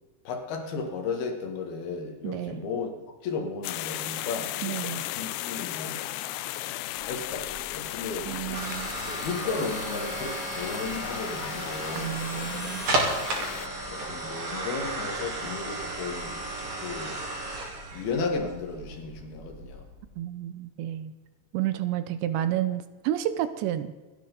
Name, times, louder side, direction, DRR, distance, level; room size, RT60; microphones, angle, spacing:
voice 1, 0.2-6.2 6.6-6.7 7.0-8.8 9.1-12.2 13.3-13.5 13.9-17.2 17.9-19.8, left 4 dB, 65° left, 3 dB, 3.2 m, -35 dB
voice 2, 2.2-2.6 4.6-5.0 8.3-8.9 12.0-12.9 20.2-21.1 21.5-23.9, right 12 dB, 80° right, 11 dB, 2.9 m, -30 dB
sound 1, 3.6-13.7, left 16 dB, 85° left, 2.8 m, -35 dB
sound 2, 7.0-20.0, right 2 dB, 55° right, 4.9 m, -34 dB
27.5 x 10.0 x 4.0 m, 1.2 s
omnidirectional pair, 5.3 m